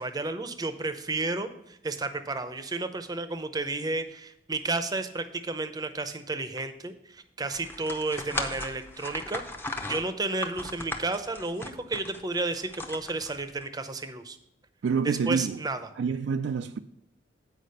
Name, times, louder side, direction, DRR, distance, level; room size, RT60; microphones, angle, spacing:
voice 1, 0.0-9.4 9.9-14.4 15.0-15.8, right 3 dB, 20° right, 0.6 m, -32 dB
sound 1, 7.5-13.6, left 2 dB, 10° left, 0.7 m, -37 dB
voice 2, 14.8-15.6 16.0-16.8, right 5 dB, 80° right, 0.4 m, -27 dB
8.4 x 4.9 x 6.4 m
head